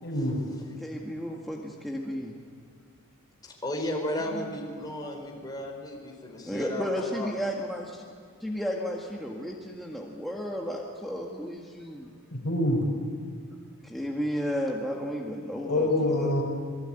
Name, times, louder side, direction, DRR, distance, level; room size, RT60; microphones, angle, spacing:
voice 1, 0.0-0.4 4.2-4.3 12.3-12.8 15.6-16.4, left 1 dB, 50° left, 1 dB, 5.8 m, -26 dB
voice 2, 0.8-2.4 6.4-8.0 8.4-12.1 13.8-16.3, equal, ahead, -2 dB, 1.8 m, -33 dB
voice 3, 3.4-7.3, left 1 dB, 20° left, 0 dB, 4.8 m, -34 dB
27.5 x 19.5 x 9.1 m, 2.1 s
head